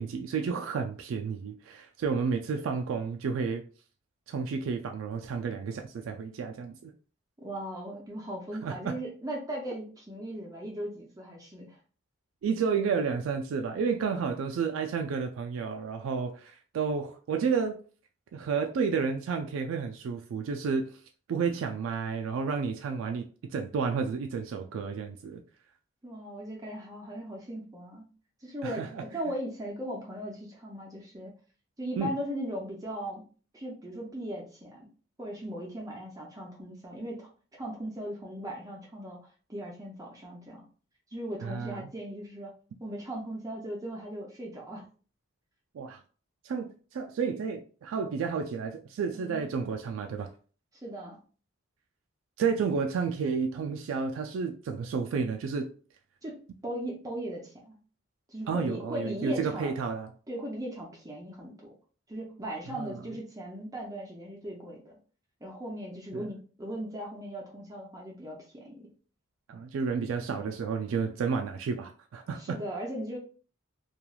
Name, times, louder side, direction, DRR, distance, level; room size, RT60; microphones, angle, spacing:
voice 1, 0.0-3.6 4.3-6.9 8.6-9.0 12.4-17.8 18.3-21.0 21.3-23.2 23.5-25.4 28.6-29.0 32.0-32.1 41.4-41.9 45.7-46.0 46.4-50.3 52.4-55.7 58.5-60.1 62.7-62.9 66.1-66.2 69.5-72.6, right 5 dB, 75° right, 0.3 m, -31 dB
voice 2, 7.4-11.8 26.0-28.1 28.4-31.3 31.8-33.3 33.5-34.9 35.2-39.2 39.5-40.7 41.1-42.5 42.8-44.8 49.1-49.5 50.8-51.2 56.2-57.8 58.3-59.8 60.3-61.7 62.1-65.0 65.4-68.9 70.3-70.5 72.4-73.2, right 1 dB, 15° right, 0.5 m, -38 dB
3.0 x 2.3 x 2.2 m
head